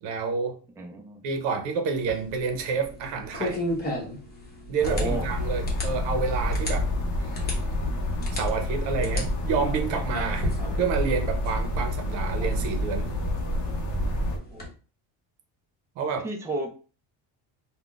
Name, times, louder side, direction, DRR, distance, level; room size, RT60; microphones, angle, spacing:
voice 1, 0.0-0.6 1.2-3.6 4.7-6.9 7.2-7.3 8.3-13.1 16.0-16.3, right 5 dB, 65° right, 6 dB, 0.8 m, -29 dB
voice 2, 0.8-1.2 4.8-5.2 14.5-14.7 16.2-16.7, right 2 dB, 5° right, 2 dB, 0.4 m, -32 dB
sound 1, 1.9-14.7, left 1 dB, 20° left, 1.0 m, -36 dB
sound 2, 4.8-14.4, left 1 dB, 40° left, 0.7 m, -28 dB
3.6 x 2.3 x 2.4 m, 0.37 s
cardioid pair, 120°, 47 cm